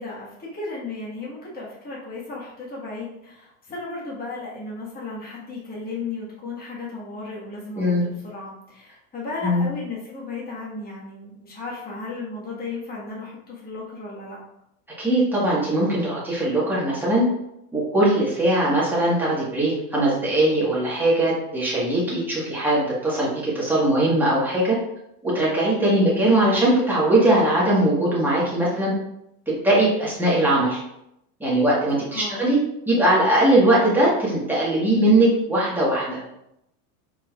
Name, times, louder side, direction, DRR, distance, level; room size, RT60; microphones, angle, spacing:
voice 1, 0.0-14.4 25.8-26.1 32.1-32.4, left 3 dB, 20° left, -6 dB, 1.6 m, -35 dB
voice 2, 15.0-17.2 17.7-24.8 25.2-28.9 29.5-30.8 31.4-36.2, right 1 dB, 5° right, -7 dB, 1.5 m, -20 dB
5.0 x 4.3 x 2.4 m, 0.81 s
supercardioid pair, 135°, 46 cm